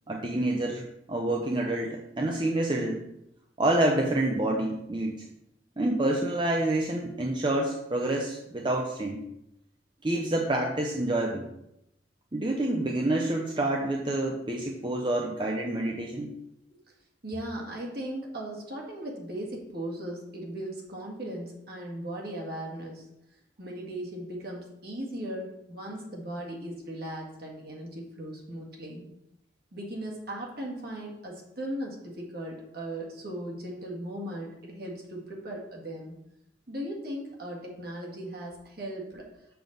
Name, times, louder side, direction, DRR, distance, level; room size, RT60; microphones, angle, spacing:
voice 1, 0.1-3.0 3.6-5.2 5.8-9.2 10.0-11.5 12.3-16.3, right 1 dB, 25° right, 1 dB, 0.6 m, -28 dB
voice 2, 17.2-23.1 23.6-29.1 29.7-36.2 36.7-39.2, right 1 dB, 55° right, -2 dB, 2.0 m, -38 dB
6.9 x 6.4 x 3.9 m, 0.83 s
head